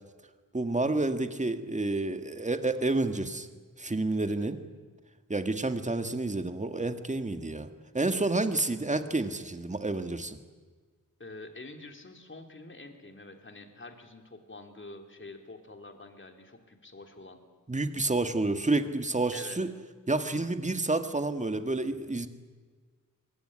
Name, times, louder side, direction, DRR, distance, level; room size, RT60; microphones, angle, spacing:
voice 1, 0.5-3.5 3.8-4.6 5.3-7.7 7.9-10.4 17.7-19.7 20.1-22.3, right 2 dB, 20° right, 8 dB, 1.9 m, -29 dB
voice 2, 11.2-17.4 19.3-19.6, left 2 dB, 35° left, 5 dB, 3.3 m, -47 dB
25.0 x 23.0 x 10.0 m, 1.5 s
wide cardioid pair, 130°, 34 cm